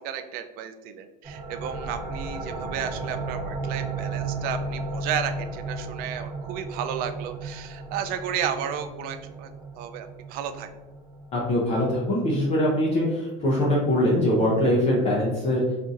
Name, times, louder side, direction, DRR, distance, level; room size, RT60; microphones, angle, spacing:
voice 1, 0.0-9.5 9.8-10.7, right 8 dB, 50° right, 8 dB, 0.4 m, -33 dB
sound 1, 1.2-12.6, right 3 dB, 30° right, 1.1 m, -35 dB
voice 2, 11.3-15.6, left 1 dB, 35° left, -4 dB, 0.7 m, -22 dB
4.1 x 2.6 x 2.4 m, 1.1 s
cardioid pair, 140°, 19 cm